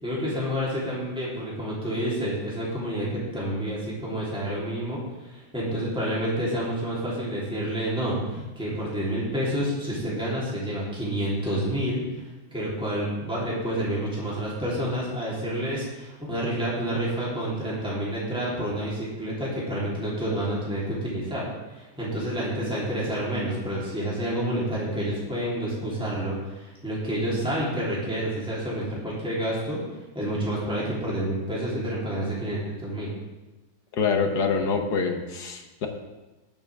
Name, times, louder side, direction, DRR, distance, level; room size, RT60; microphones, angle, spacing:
voice 1, 0.0-29.8 30.1-33.1, right 1 dB, ahead, -7 dB, 3.3 m, -29 dB
voice 2, 33.9-35.9, left 5 dB, 55° left, 4 dB, 1.5 m, -25 dB
19.5 x 7.2 x 3.5 m, 1.1 s
omnidirectional pair, 2.2 m